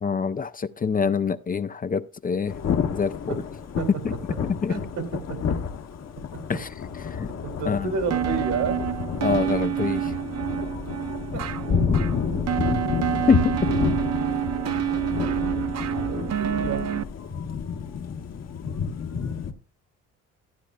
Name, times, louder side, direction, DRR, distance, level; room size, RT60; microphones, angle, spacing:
voice 1, 0.0-2.5 2.9-3.1 4.0-4.1 4.4-4.7 6.5-6.7 7.2-7.3 7.7-7.9 9.2-10.0 12.7-12.8 13.3-13.6, left 5 dB, 30° left, 0.6 m, -25 dB
Thunder / Rain, 2.5-19.5, left 6 dB, 60° left, 1.4 m, -30 dB
voice 2, 4.7-5.6 7.4-8.8 11.3-11.4 11.7-12.3 16.0-16.9, right 5 dB, 80° right, 3.0 m, -31 dB
sound 1, 8.1-17.0, right 11 dB, 60° right, 0.7 m, -28 dB
15.0 x 10.0 x 2.4 m
cardioid pair, 90°, 30 cm